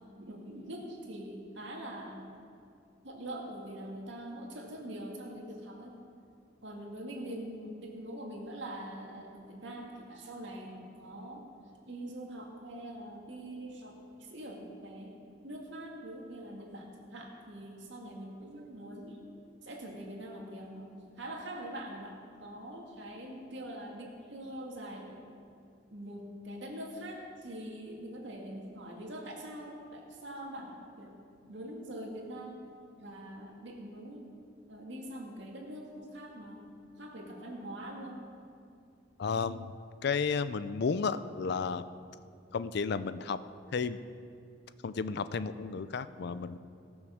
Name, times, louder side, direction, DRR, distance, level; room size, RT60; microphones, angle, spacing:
voice 1, 0.2-2.2 3.0-5.9 6.6-11.4 11.9-15.2 15.4-19.2 19.6-25.2 25.9-31.1 31.5-32.6 33.0-34.2 34.7-36.7 37.0-38.2, right 1 dB, 70° right, 0 dB, 2.1 m, -43 dB
voice 2, 39.2-41.9 42.5-43.4 43.7-44.0 44.8-46.6, left 5 dB, 60° left, 14 dB, 0.5 m, -33 dB
17.5 x 6.3 x 6.4 m, 2.5 s
head